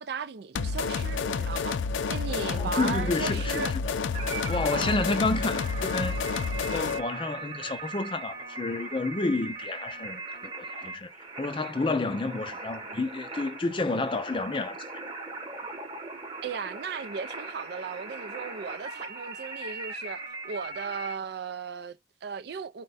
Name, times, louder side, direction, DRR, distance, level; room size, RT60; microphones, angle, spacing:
voice 1, 0.0-3.7 4.7-5.0 16.4-22.8, right 6 dB, 55° right, 0.4 m, -36 dB
sound 1, 0.6-7.1, left 5 dB, 85° left, 0.4 m, -30 dB
voice 2, 2.4-3.9 4.5-6.2 6.7-11.1 11.4-14.8, left 3 dB, 25° left, 0.4 m, -30 dB
sound 2, 4.1-21.2, right 3 dB, 25° right, 0.9 m, -39 dB
4.3 x 2.2 x 3.9 m
head